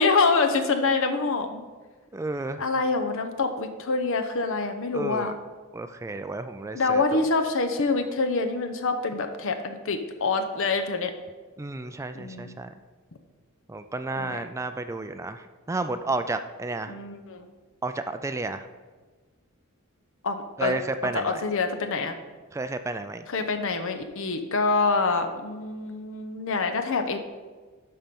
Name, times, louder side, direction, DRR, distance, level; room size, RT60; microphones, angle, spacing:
voice 1, 0.0-1.6 2.6-5.3 6.7-11.1 12.1-12.5 14.2-14.4 16.9-17.5 20.2-20.8 21.1-22.2 23.3-27.2, left 4 dB, 65° left, 7 dB, 0.8 m, -26 dB
voice 2, 2.1-2.6 4.9-5.3 5.7-7.2 11.6-12.7 13.7-16.9 17.8-18.7 20.6-21.4 22.5-23.3, right 2 dB, 15° right, 10 dB, 0.3 m, -32 dB
11.5 x 4.3 x 5.3 m, 1.4 s
head